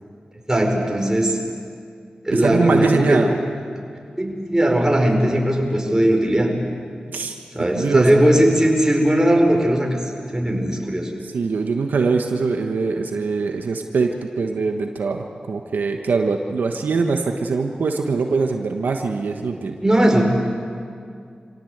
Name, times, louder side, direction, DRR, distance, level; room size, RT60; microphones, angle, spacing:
voice 1, 0.5-1.4 2.2-3.2 4.2-6.5 7.5-10.0 10.3-11.1 19.8-20.2, right 1 dB, 20° right, 1 dB, 5.1 m, -18 dB
voice 2, 2.3-3.3 7.1-7.4 7.7-8.5 11.2-19.8, right 4 dB, 85° right, 4 dB, 1.3 m, -23 dB
26.5 x 16.5 x 8.1 m, 2.3 s
cardioid pair, 40°, 3 cm